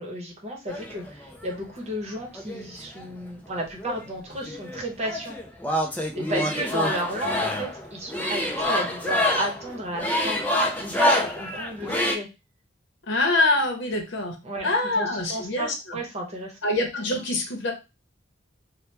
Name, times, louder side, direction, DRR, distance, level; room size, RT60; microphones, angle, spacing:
voice 1, 0.0-5.4 6.1-12.3 14.4-16.6, right 1 dB, 35° right, -1 dB, 0.9 m, -33 dB
sound 1, 0.7-1.5 2.3-3.5 3.8-12.1, left 1 dB, 10° left, 0.4 m, -27 dB
voice 2, 13.1-14.4 14.6-16.0 16.6-17.7, left 2 dB, 65° left, 2 dB, 0.8 m, -25 dB
2.8 x 2.1 x 3.3 m, 0.27 s
head